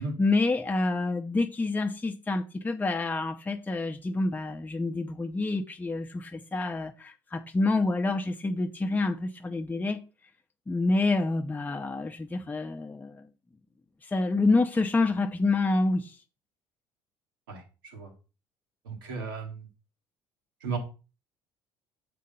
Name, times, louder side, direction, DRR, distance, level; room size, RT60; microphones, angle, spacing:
voice 1, 0.0-10.0 10.7-13.3 14.1-16.2, left 3 dB, 15° left, 0.7 m, -27 dB
voice 2, 18.9-19.7 20.6-20.8, right 4 dB, 85° right, 1.9 m, -34 dB
7.7 x 3.7 x 5.5 m
hypercardioid pair, 65°, 11 cm